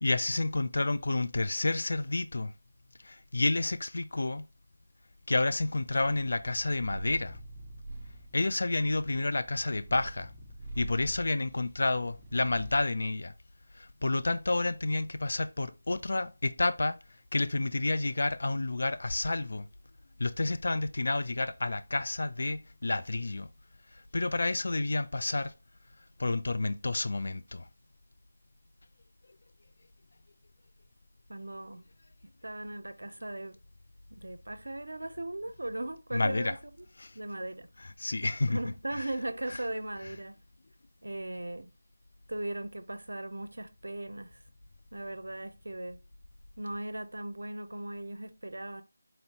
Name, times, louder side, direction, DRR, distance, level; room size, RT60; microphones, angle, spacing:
voice 1, 0.0-2.5 3.0-4.5 5.3-7.4 8.3-10.3 10.8-13.3 13.7-17.0 17.3-19.7 20.2-23.5 23.9-25.5 26.2-27.7 36.1-36.5 37.0-37.2 37.8-38.6, left 2 dB, 60° left, 0.4 m, -30 dB
Purr, 6.0-12.9, right 1 dB, 15° right, 0.7 m, -45 dB
voice 2, 31.3-31.8 32.2-33.5 34.1-36.9 37.1-37.7 38.5-40.4 41.0-41.7 42.3-44.4 44.9-46.0 46.6-48.8, right 1 dB, 80° right, 0.5 m, -38 dB
4.1 x 2.7 x 2.9 m
figure-of-eight pair, 165°, 0 cm